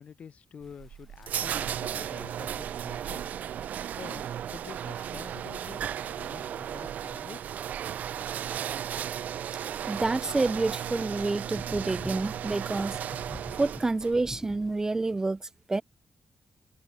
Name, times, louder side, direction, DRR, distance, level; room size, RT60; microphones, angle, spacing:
voice 1, 0.0-3.3 4.0-5.8 6.1-7.9, left 7 dB, 60° left, 7.6 m, -47 dB
sound 1, 0.6-15.2, left 1 dB, 5° left, 5.6 m, -50 dB
sound 2, 0.6-14.2, right 9 dB, 85° right, 3.1 m, -35 dB
voice 2, 9.9-13.0 13.5-15.8, right 3 dB, 20° right, 1.0 m, -28 dB
cardioid pair, 115°, 3 cm